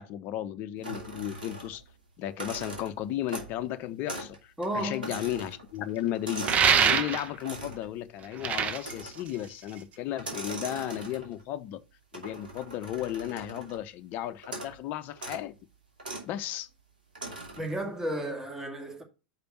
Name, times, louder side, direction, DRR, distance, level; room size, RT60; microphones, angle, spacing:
voice 1, 0.0-1.8 2.2-11.8 12.1-15.5 16.3-16.7, left 12 dB, 40° left, 0.7 m, -34 dB
sound 1, 0.8-1.9 2.3-3.7 4.1-4.4 4.6-6.8 7.4-7.9 8.8-9.3 10.1-11.4 12.1-13.9 14.4-14.8 15.1-15.5 16.0-16.3 17.2-17.7, right 2 dB, 80° right, 2.5 m, -40 dB
voice 2, 4.6-5.2 17.6-19.0, right 1 dB, 10° right, 2.3 m, -33 dB
sound 2, 6.4-7.4 8.2-9.9, right 7 dB, 30° right, 0.9 m, -25 dB
5.7 x 5.2 x 5.9 m
figure-of-eight pair, 90°, 5 cm